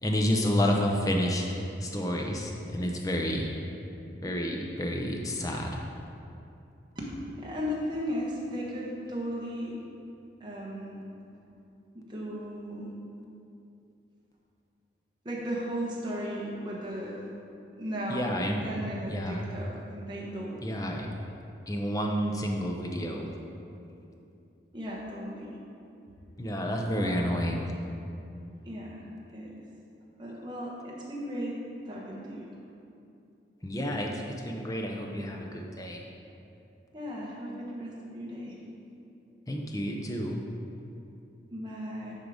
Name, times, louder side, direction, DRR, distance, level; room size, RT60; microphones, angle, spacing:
voice 1, 0.0-3.5 4.2-5.7 18.1-18.7 19.1-19.4 20.6-21.1 21.7-23.3 26.4-27.7 33.6-36.0 39.5-40.4, equal, 20° left, 1 dB, 0.6 m, -30 dB
voice 2, 6.9-9.8 10.4-11.0 11.9-12.9 15.2-17.2 17.8-18.3 18.6-20.7 24.7-25.6 27.0-27.1 28.6-29.0 29.3-29.5 30.2-32.5 36.9-38.5 41.5-42.2, equal, 25° right, -4 dB, 1.2 m, -36 dB
9.9 x 3.7 x 5.0 m, 2.7 s
head